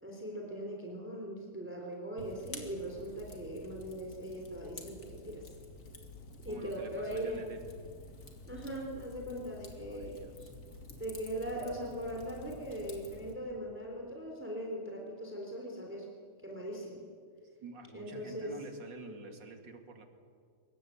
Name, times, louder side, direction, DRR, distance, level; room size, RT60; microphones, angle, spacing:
voice 1, 0.0-5.4 6.4-7.4 8.5-10.2 11.0-16.1 16.4-17.1 17.9-18.5, right 1 dB, 5° right, 0 dB, 3.5 m, -40 dB
Fire, 2.2-13.3, left 2 dB, 45° left, 3.2 m, -50 dB
voice 2, 6.5-7.7 9.8-10.5 17.4-20.1, right 4 dB, 55° right, 5 dB, 3.0 m, -48 dB
24.5 x 22.5 x 8.6 m, 2.2 s
omnidirectional pair, 2.4 m